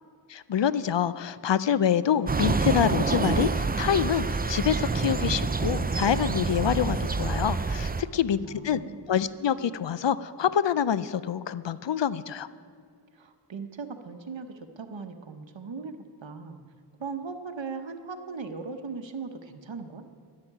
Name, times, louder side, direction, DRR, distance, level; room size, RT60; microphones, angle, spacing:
voice 1, 0.3-8.8 9.1-12.5, left 8 dB, 75° left, 16 dB, 0.5 m, -26 dB
sound 1, 2.3-8.0, right 4 dB, 20° right, 0.4 m, -27 dB
voice 2, 8.4-9.1 13.1-16.6 17.0-20.0, right 4 dB, 85° right, 7 dB, 0.9 m, -39 dB
11.5 x 7.6 x 9.8 m, 2.2 s
wide cardioid pair, 55°, 44 cm